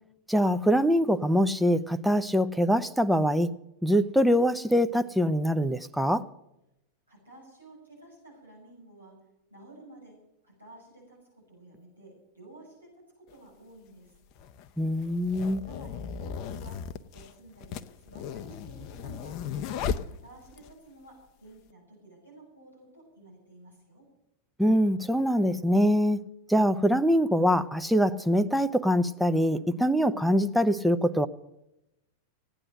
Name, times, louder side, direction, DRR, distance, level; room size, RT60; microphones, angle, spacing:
voice 1, 0.3-3.5 3.8-6.2 14.8-15.6 24.6-26.2 26.5-31.3, equal, ahead, 9 dB, 0.7 m, -24 dB
voice 2, 7.1-9.2 9.5-10.2 10.4-14.2 15.5-16.8 17.1-19.7 20.0-24.1, right 2 dB, 90° right, -4 dB, 6.8 m, -52 dB
sound 1, 13.3-13.4 14.3-20.7, left 7 dB, 40° left, 0.7 m, -36 dB
16.5 x 9.9 x 7.7 m, 0.88 s
figure-of-eight pair, 90°, 0 cm